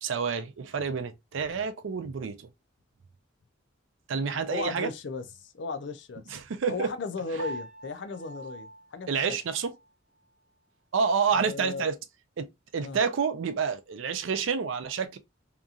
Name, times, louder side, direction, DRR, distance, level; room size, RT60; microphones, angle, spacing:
voice 1, 0.0-2.5 4.1-4.9 6.3-6.9 9.1-9.7 10.9-12.0 12.4-15.2, right 6 dB, 80° right, 0.4 m, -29 dB
voice 2, 4.3-6.4 6.7-9.3 11.3-11.9 12.8-13.0, left 4 dB, 65° left, 0.4 m, -36 dB
Piano, 7.4-9.9, right 1 dB, 50° right, 0.7 m, -43 dB
2.8 x 2.4 x 2.4 m
head